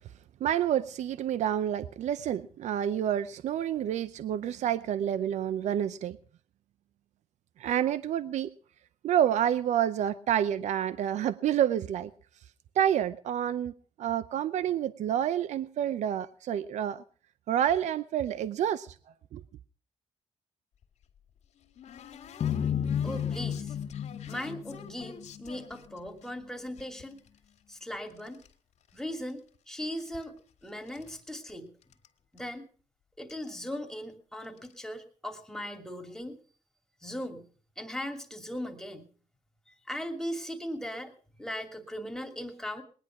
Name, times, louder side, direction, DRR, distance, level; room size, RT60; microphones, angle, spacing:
voice 1, 0.4-6.2 7.6-8.5 9.0-12.1 12.8-13.7 14.0-17.0 17.5-18.9 19.3-19.4, right 10 dB, 80° right, 15 dB, 0.6 m, -28 dB
sound 1, 20.8-26.3 26.7-28.5 28.8-29.6 29.8-31.2 31.5-31.6 31.8-32.1 32.4-32.5 33.3-33.4 33.7-33.9 34.4-34.7, left 7 dB, 75° left, 2.0 m, -50 dB
sound 2, 22.4-25.6, left 8 dB, 60° left, 0.9 m, -32 dB
voice 2, 23.0-23.8 24.3-27.2 27.7-28.4 28.9-29.4 29.7-31.7 32.3-32.7 33.2-36.4 37.0-37.5 37.8-39.0 39.9-41.1 41.4-42.8, equal, 5° left, 5 dB, 2.6 m, -38 dB
20.0 x 10.5 x 5.9 m, 0.42 s
cardioid pair, 100°, 12 cm